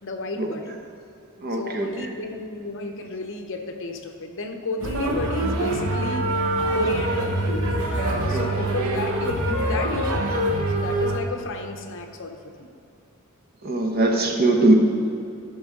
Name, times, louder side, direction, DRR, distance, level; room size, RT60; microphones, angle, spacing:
voice 1, 0.0-0.8 1.5-6.3 6.7-7.3 7.9-10.3 10.7-12.7, left 3 dB, 60° left, 5 dB, 0.8 m, -32 dB
voice 2, 1.4-1.9 8.2-8.5 13.6-14.7, right 2 dB, 45° right, 3 dB, 0.9 m, -21 dB
sound 1, 4.8-11.2, right 1 dB, 70° right, 1.0 m, -24 dB
13.0 x 6.0 x 3.8 m, 2.6 s
head